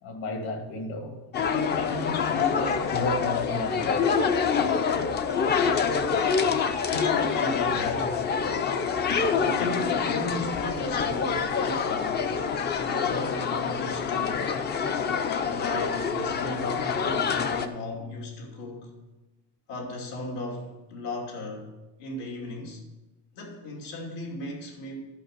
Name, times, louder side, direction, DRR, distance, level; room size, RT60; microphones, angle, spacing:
voice 1, 0.0-4.1 4.5-4.9 9.0-9.3, left 2 dB, 60° left, 4 dB, 2.1 m, -33 dB
sound 1, 1.3-17.7, left 6 dB, 25° left, 0.4 m, -26 dB
voice 2, 6.9-8.1 9.4-12.2 12.7-14.4 15.5-18.9 19.7-21.7 22.0-22.8 23.3-24.9, left 2 dB, 80° left, 0 dB, 2.8 m, -35 dB
11.5 x 5.6 x 6.6 m, 1.1 s
cardioid pair, 180°, 40 cm